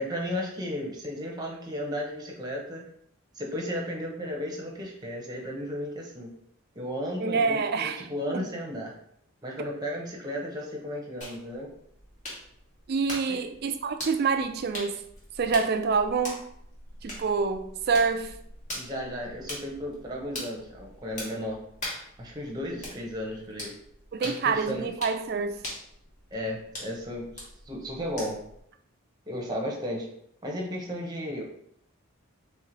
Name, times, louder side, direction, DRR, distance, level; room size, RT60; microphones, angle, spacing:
voice 1, 0.0-2.9 3.3-6.3 6.7-8.9 9.4-11.7 13.3-13.4 18.7-21.6 22.2-23.7 24.2-24.9 26.3-28.4 29.3-30.1 30.4-31.4, equal, 20° right, 0.8 m, -34 dB
voice 2, 7.2-8.0 8.3-8.5 12.9-15.0 15.4-16.5 17.0-18.3 24.1-25.6, right 5 dB, 45° right, 0.3 m, -27 dB
sound 1, 11.2-28.6, left 1 dB, 35° left, 1.2 m, -42 dB
3.5 x 3.0 x 3.9 m
head